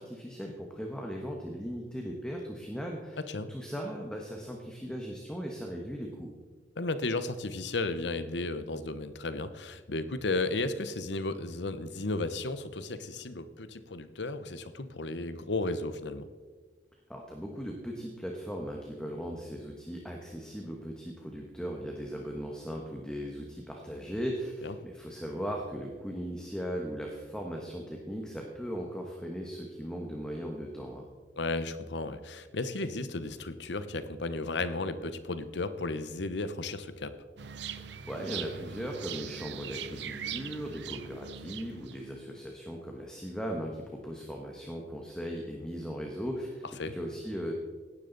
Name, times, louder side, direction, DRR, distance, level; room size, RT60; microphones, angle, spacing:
voice 1, 0.0-3.2 3.5-6.3 17.1-31.1 37.7-47.5, equal, 5° left, 0 dB, 1.2 m, -38 dB
voice 2, 6.8-16.3 24.6-24.7 31.3-37.1 46.8-47.0, left 2 dB, 80° left, 12 dB, 0.9 m, -34 dB
sound 1, 37.4-42.4, right 8 dB, 75° right, 0.6 m, -41 dB
17.0 x 10.0 x 4.0 m, 1.4 s
head